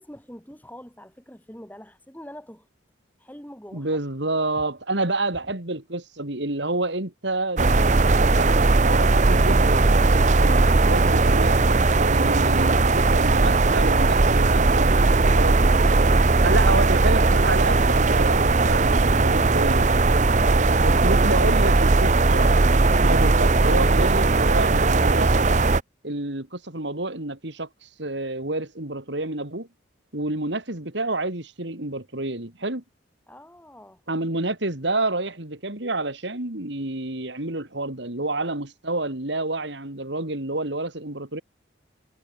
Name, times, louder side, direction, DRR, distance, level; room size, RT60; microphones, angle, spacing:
voice 1, 0.0-2.7 3.2-4.0 33.3-34.0, equal, 10° left, 7.3 m, -45 dB
voice 2, 3.7-9.9 10.4-15.9 16.4-20.1 20.8-22.6 23.0-25.5 26.0-29.7 30.1-32.8 34.1-41.4, right 2 dB, 70° right, 3.1 m, -29 dB
sound 1, 7.6-25.8, right 3 dB, 40° right, 0.7 m, -18 dB
head